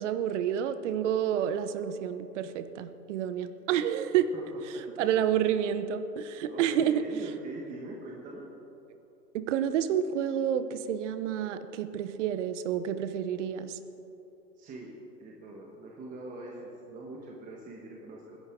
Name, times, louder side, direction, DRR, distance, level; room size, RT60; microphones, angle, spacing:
voice 1, 0.0-4.3 5.0-7.0 9.3-13.8, right 9 dB, 45° right, 11 dB, 0.9 m, -29 dB
voice 2, 4.7-5.2 6.5-8.5 14.6-14.9 15.2-18.4, right 2 dB, 15° right, -2 dB, 1.3 m, -42 dB
21.5 x 10.5 x 3.7 m, 2.9 s
hypercardioid pair, 135°, 49 cm